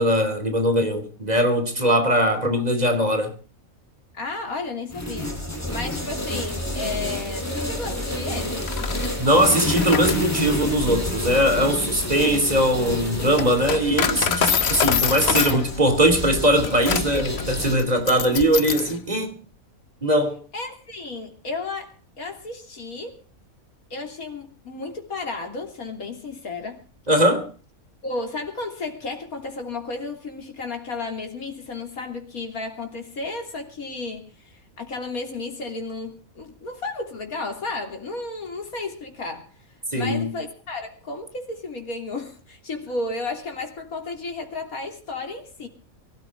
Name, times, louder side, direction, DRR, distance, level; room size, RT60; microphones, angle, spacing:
voice 1, 0.0-3.3 9.2-19.4 20.0-20.4 27.1-27.5 39.9-40.3, equal, 30° right, 3.0 m, -21 dB
voice 2, 4.1-8.6 15.2-15.6 20.5-23.2 23.9-26.8 28.0-39.5 39.9-45.7, left 3 dB, 85° left, 3.5 m, -33 dB
sound 1, 4.9-17.8, left 1 dB, 10° left, 6.3 m, -29 dB
Coin (dropping), 8.4-19.0, left 7 dB, 50° left, 1.2 m, -27 dB
24.0 x 13.5 x 3.6 m
omnidirectional pair, 1.5 m